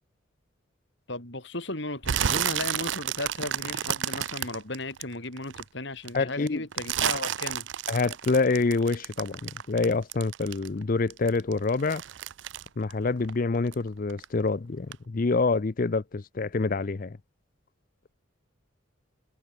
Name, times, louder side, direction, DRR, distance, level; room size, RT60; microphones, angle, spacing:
voice 1, 1.1-7.7, left 2 dB, 55° left, 4.4 m, -35 dB
sound 1, 2.0-5.6 6.0-10.8 11.1-13.8 14.1-14.5 14.9-15.0, right 10 dB, 60° right, 0.5 m, -31 dB
voice 2, 6.1-6.6 7.9-12.0 12.8-17.2, left 3 dB, 40° left, 0.5 m, -26 dB
head